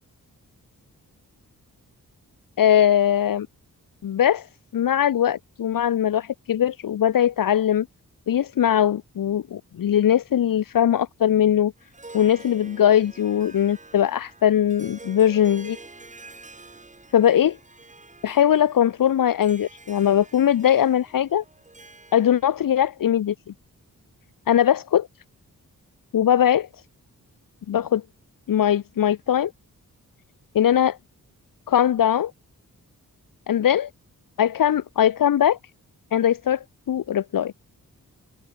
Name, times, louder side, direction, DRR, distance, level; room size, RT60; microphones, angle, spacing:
voice 1, 2.6-3.5 4.0-4.5 4.7-7.9 8.3-11.7 12.1-15.8 17.1-17.6 18.2-21.4 22.1-23.3 24.5-25.1 26.1-26.7 27.7-28.0 28.5-29.5 30.5-31.0 31.7-32.3 33.5-33.9 34.4-35.6 36.1-37.5, left 10 dB, 75° left, 0.9 m, -20 dB
Harp, 11.8-22.7, right 3 dB, 20° right, 3.5 m, -47 dB
wide cardioid pair, 140°, 33 cm